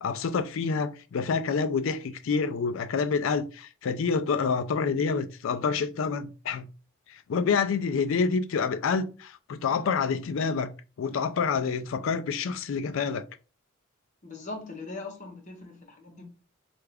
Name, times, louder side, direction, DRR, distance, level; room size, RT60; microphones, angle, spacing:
voice 1, 0.0-6.6 7.1-10.7 11.0-13.2, left 5 dB, 70° left, 0.4 m, -27 dB
voice 2, 14.2-16.2, left 3 dB, 35° left, 0.8 m, -40 dB
3.3 x 2.4 x 3.3 m
head